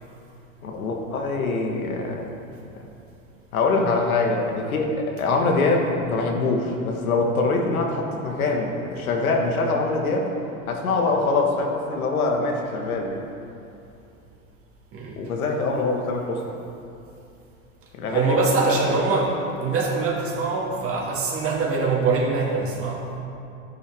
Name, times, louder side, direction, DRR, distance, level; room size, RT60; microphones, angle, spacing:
voice 1, 0.6-2.3 3.5-10.3 10.7-13.2 15.2-16.5 18.0-19.2, left 3 dB, 90° left, 1 dB, 1.6 m, -24 dB
voice 2, 14.9-15.2 18.1-23.1, right 4 dB, 30° right, -2 dB, 2.3 m, -23 dB
11.5 x 10.5 x 3.6 m, 2.7 s
hypercardioid pair, 110°, 42 cm